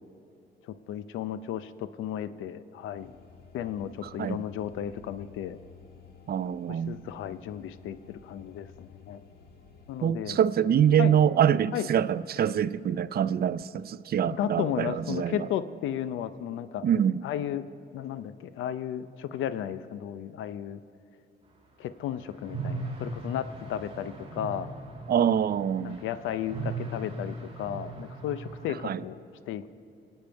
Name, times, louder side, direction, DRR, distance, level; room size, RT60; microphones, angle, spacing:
voice 1, 0.6-3.1 3.5-5.6 6.7-9.2 9.9-10.4 11.0-11.2 11.7-11.9 14.4-16.8 17.2-17.7 17.9-20.8 21.8-24.7 25.8-29.7, left 10 dB, 85° left, 0.6 m, -34 dB
sound 1, 2.9-10.0, left 5 dB, 50° left, 1.7 m, -53 dB
voice 2, 4.0-4.4 6.3-7.0 10.0-15.5 16.8-17.2 25.1-26.0 28.8-29.0, right 9 dB, 50° right, 0.5 m, -25 dB
sound 2, 22.4-28.7, right 3 dB, 30° right, 2.5 m, -38 dB
25.0 x 8.9 x 4.6 m
cardioid pair, 90°, 20 cm